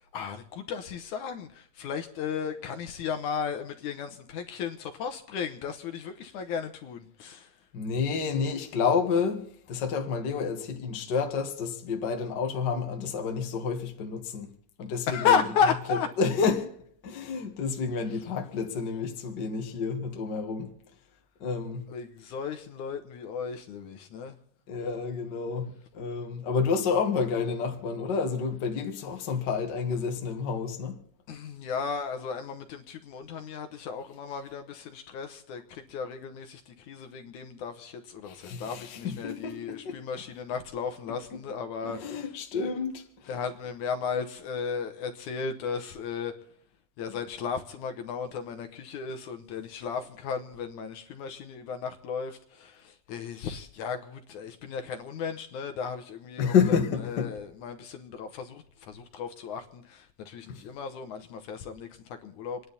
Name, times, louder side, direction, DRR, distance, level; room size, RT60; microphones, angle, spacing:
voice 1, 0.1-7.5 15.1-16.1 21.9-24.4 31.3-42.3 43.3-46.4 47.0-56.5 57.0-62.7, left 6 dB, 70° left, 2.4 m, -34 dB
voice 2, 7.7-14.5 14.8-15.4 15.9-16.8 17.0-20.7 21.4-21.8 24.7-31.0 38.3-40.0 41.3-41.4 41.8-43.3 56.4-57.3 60.5-60.6, left 5 dB, 40° left, 1.8 m, -29 dB
28.5 x 10.5 x 4.1 m
omnidirectional pair, 3.8 m